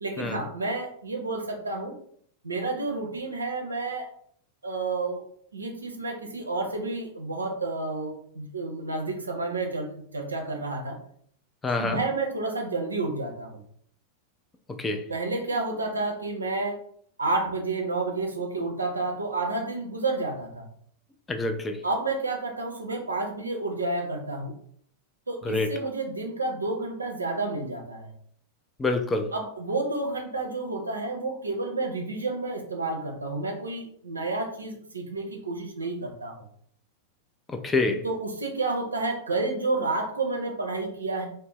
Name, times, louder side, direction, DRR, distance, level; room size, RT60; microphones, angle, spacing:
voice 1, 0.0-2.0 2.4-4.1 4.6-5.2 5.5-11.0 11.8-13.6 15.1-16.8 17.2-20.7 21.8-24.5 25.3-28.1 29.3-36.4 38.0-41.3, right 3 dB, 80° right, 3 dB, 0.5 m, -30 dB
voice 2, 11.6-12.0 14.7-15.0 21.3-21.8 25.4-25.7 28.8-29.3 37.5-38.0, left 3 dB, 15° left, 5 dB, 0.3 m, -26 dB
2.5 x 2.0 x 3.0 m, 0.62 s
figure-of-eight pair, 90°, 0 cm